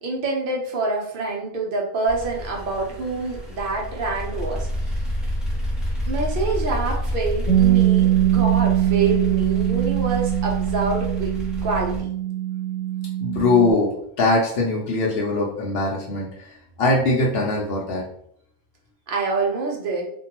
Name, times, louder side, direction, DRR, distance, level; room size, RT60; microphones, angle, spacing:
voice 1, 0.0-4.7 6.1-11.3 11.6-12.1 19.1-20.1, right 3 dB, 60° right, -1 dB, 0.9 m, -26 dB
sound 1, 2.1-12.0, equal, ahead, 0.4 m, -29 dB
Bass guitar, 7.5-13.7, right 13 dB, 40° left, 0.7 m, -21 dB
voice 2, 13.2-16.3 16.8-18.0, left 2 dB, 70° left, -3 dB, 0.8 m, -21 dB
2.6 x 2.2 x 2.9 m, 0.68 s
omnidirectional pair, 1.1 m